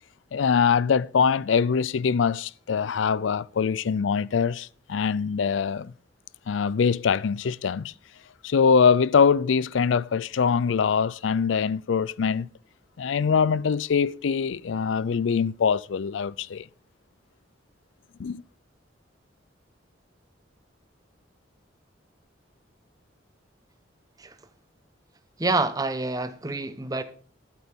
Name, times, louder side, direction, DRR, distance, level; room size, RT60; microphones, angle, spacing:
voice 1, 0.3-5.9 6.5-7.9 8.4-12.5 13.0-16.7 18.2-18.4, left 6 dB, 75° left, 0.4 m, -23 dB
voice 2, 25.4-27.0, right 3 dB, 20° right, 0.8 m, -27 dB
12.0 x 9.1 x 3.6 m
head